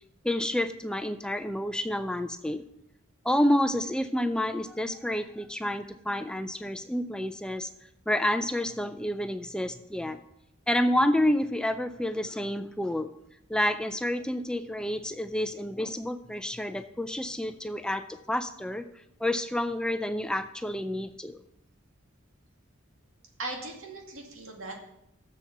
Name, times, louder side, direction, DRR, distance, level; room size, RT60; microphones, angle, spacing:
voice 1, 0.2-2.6 3.2-7.7 8.1-10.2 10.7-13.1 13.5-18.8 19.2-21.4, left 1 dB, 5° left, 9 dB, 0.3 m, -29 dB
voice 2, 23.4-24.8, right 2 dB, 85° right, 1 dB, 2.2 m, -38 dB
7.2 x 7.2 x 6.6 m, 0.81 s
head